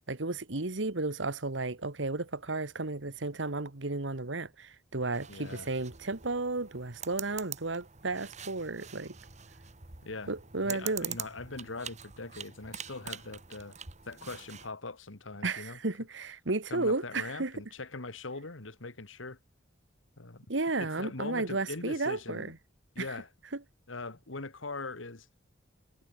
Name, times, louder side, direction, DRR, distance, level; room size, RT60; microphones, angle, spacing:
voice 1, 0.0-9.1 10.3-11.2 15.4-17.5 20.5-22.5 23.0-23.1 23.5-23.6, right 3 dB, 75° right, 1.6 m, -33 dB
sound 1, 5.1-14.7, right 9 dB, 35° right, 1.9 m, -45 dB
voice 2, 5.3-5.7 10.0-10.3 10.6-13.7 14.1-15.8 16.7-19.4 20.2-20.4 20.8-22.5 23.0-23.3 23.9-25.3, left 3 dB, 90° left, 2.0 m, -41 dB
head